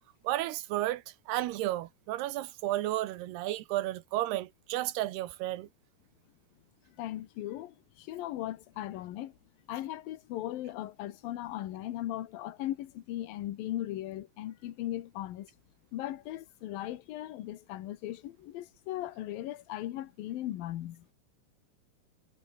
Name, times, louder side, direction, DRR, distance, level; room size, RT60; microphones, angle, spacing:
voice 1, 0.2-5.7, right 15 dB, 85° right, 3.1 m, -32 dB
voice 2, 6.9-9.3 9.7-15.5 15.9-21.1, left 14 dB, 70° left, 2.9 m, -38 dB
omnidirectional pair, 4.6 m